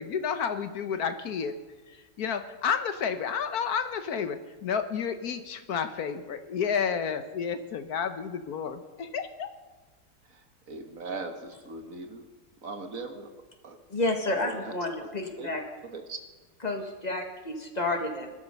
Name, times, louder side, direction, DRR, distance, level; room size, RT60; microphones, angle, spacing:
voice 1, 0.0-1.5 1.9-9.5, left 7 dB, 75° left, 9 dB, 1.4 m, -31 dB
voice 2, 10.3-12.3 12.6-13.3 13.6-13.8 14.2-14.7 15.0-15.5 15.9-16.2, right 3 dB, 60° right, 6 dB, 1.8 m, -40 dB
voice 3, 13.9-15.6 16.6-18.3, left 2 dB, 25° left, 4 dB, 1.8 m, -30 dB
19.5 x 12.5 x 5.4 m, 1.3 s
omnidirectional pair, 1.7 m